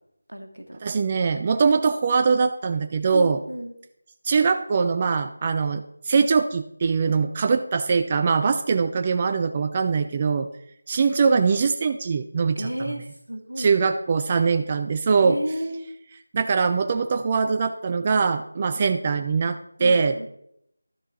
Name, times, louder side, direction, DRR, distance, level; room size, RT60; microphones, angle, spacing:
voice 1, 0.3-0.8 3.1-3.7 12.5-13.7 15.1-15.9 19.8-20.3, equal, 85° right, 6 dB, 1.5 m, -32 dB
voice 2, 0.8-3.4 4.2-10.5 10.9-12.9 13.6-15.4 16.3-20.2, right 5 dB, 25° right, 8 dB, 0.3 m, -22 dB
12.0 x 6.6 x 3.9 m, 0.75 s
figure-of-eight pair, 165°, 0 cm